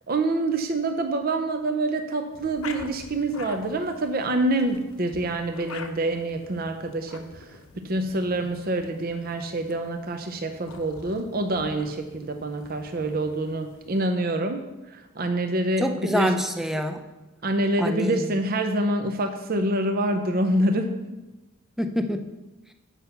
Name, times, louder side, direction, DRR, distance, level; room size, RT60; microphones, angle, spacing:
voice 1, 0.1-16.4 17.4-21.2, right 1 dB, 45° right, 6 dB, 0.6 m, -26 dB
sound 1, 2.3-14.0, left 4 dB, 80° left, 0.9 m, -46 dB
voice 2, 15.8-17.0 17.8-18.3 21.8-22.3, equal, ahead, 6 dB, 0.6 m, -26 dB
8.3 x 5.6 x 7.0 m, 1.1 s
head